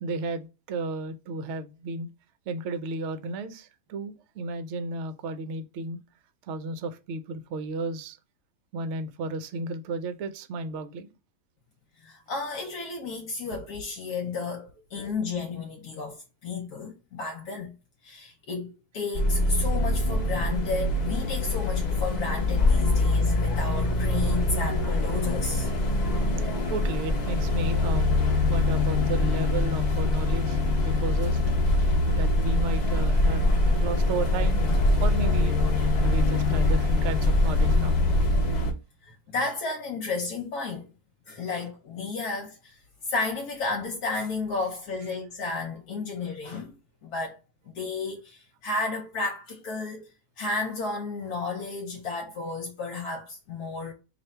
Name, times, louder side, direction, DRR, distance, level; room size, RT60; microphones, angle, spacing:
voice 1, 0.0-2.1 2.5-6.0 6.5-8.2 8.7-11.1 26.7-28.1 28.5-31.4 32.1-33.5 33.8-35.6 36.0-37.9, right 3 dB, 65° right, 0.7 m, -33 dB
voice 2, 12.0-17.7 18.0-25.7 39.0-40.9 41.3-42.8 43.1-46.8 47.0-47.4 47.7-50.0 50.4-53.9, left 3 dB, 75° left, 1.2 m, -32 dB
sound 1, 19.1-38.7, left 2 dB, 55° left, 0.5 m, -24 dB
3.3 x 2.5 x 4.2 m
omnidirectional pair, 1.6 m